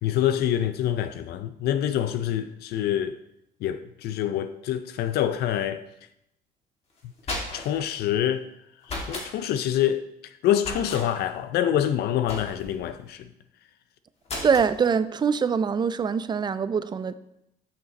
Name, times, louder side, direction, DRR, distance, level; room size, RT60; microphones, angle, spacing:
voice 1, 0.0-3.2 3.6-5.8 7.5-8.4 9.1-13.3, left 11 dB, 70° left, 0.4 m, -26 dB
sound 1, 7.0-7.8 8.8-9.3 10.6-11.1 12.3-12.8 14.3-14.7, left 2 dB, 35° left, 1.9 m, -34 dB
voice 2, 14.4-17.2, right 6 dB, 25° right, 0.4 m, -24 dB
6.5 x 5.7 x 4.0 m
cardioid pair, 110°, 17 cm